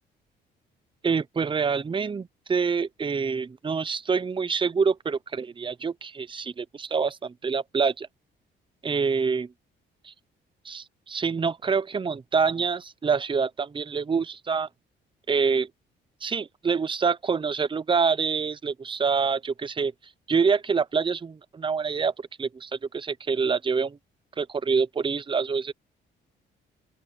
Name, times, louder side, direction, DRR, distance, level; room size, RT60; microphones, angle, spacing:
voice 1, 1.0-8.1 8.8-9.5 10.0-10.1 10.6-14.7 15.3-15.7 16.2-19.9 20.3-22.1 22.4-24.0 24.4-25.7, right 5 dB, 25° right, 0.7 m, -26 dB
open air
cardioid pair, 90°, 20 cm